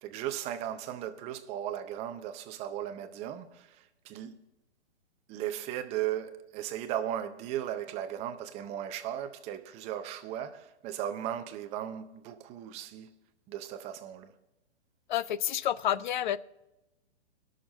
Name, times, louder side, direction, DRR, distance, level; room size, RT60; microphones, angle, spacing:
voice 1, 0.0-4.4 5.3-13.1 13.5-14.3, right 11 dB, 20° right, 0.6 m, -36 dB
voice 2, 15.1-16.4, left 11 dB, 45° left, 0.5 m, -29 dB
19.0 x 6.6 x 4.0 m
hypercardioid pair, 140°, 34 cm